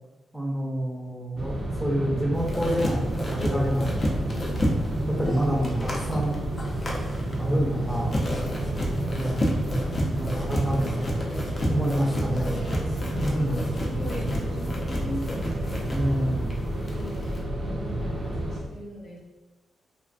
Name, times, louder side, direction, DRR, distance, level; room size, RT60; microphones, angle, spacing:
voice 1, 0.3-4.7 5.1-6.4 7.4-11.2 11.7-12.5 13.1-13.5 15.9-16.5, equal, 5° right, -3 dB, 0.6 m, -28 dB
sound 1, 1.4-18.6, right 1 dB, 50° right, 0.6 m, -30 dB
sound 2, 2.3-17.4, equal, 40° left, 0.5 m, -32 dB
voice 2, 9.3-9.6 10.7-11.0 11.9-15.9 16.3-19.2, left 1 dB, 90° left, -5 dB, 0.8 m, -40 dB
2.5 x 2.4 x 2.4 m, 1.1 s
cardioid pair, 95°, 0 cm